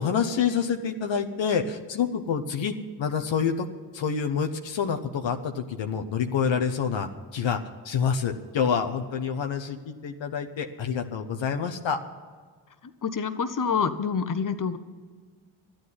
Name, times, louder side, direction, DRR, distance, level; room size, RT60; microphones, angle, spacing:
voice 1, 0.0-2.7 3.0-3.7 3.9-7.6 7.8-12.0, left 6 dB, 80° left, 6 dB, 0.9 m, -27 dB
voice 2, 13.0-14.8, left 6 dB, 45° left, 11 dB, 1.0 m, -27 dB
11.5 x 8.9 x 9.6 m, 1.5 s
cardioid pair, 40°, 45 cm